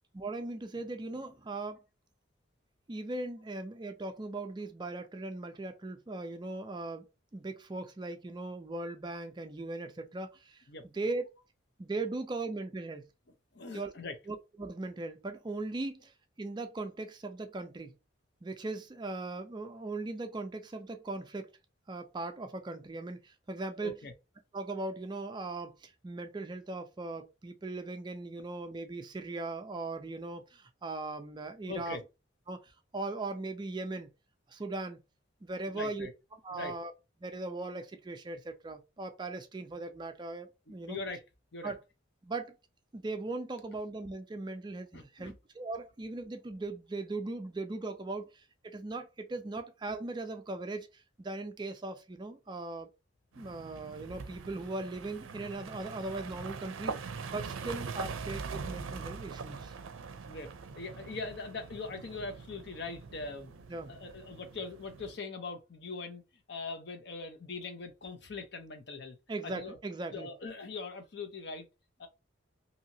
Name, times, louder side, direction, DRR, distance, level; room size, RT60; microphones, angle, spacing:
voice 1, 0.1-1.8 2.9-7.1 7.3-10.6 10.9-11.3 11.8-13.0 13.7-13.9 14.3-17.9 18.4-21.5 21.9-23.9 24.5-32.0 32.5-34.1 34.5-35.0 35.4-36.1 36.4-36.9 37.2-41.0 41.6-41.8 42.2-42.6 42.9-52.9 53.4-59.7 63.7-64.0 69.3-70.3, right 2 dB, 20° right, 0.3 m, -39 dB
voice 2, 13.5-14.2 23.8-24.1 31.7-32.0 35.7-36.1 36.5-36.7 40.9-41.2 41.5-41.7 44.9-45.3 60.3-60.5 60.8-66.2 66.5-69.2 69.4-69.8 70.1-71.7 72.0-72.1, left 3 dB, 55° left, 0.6 m, -41 dB
sound 1, 53.3-65.2, right 5 dB, 85° right, 0.4 m, -43 dB
2.8 x 2.7 x 2.6 m
head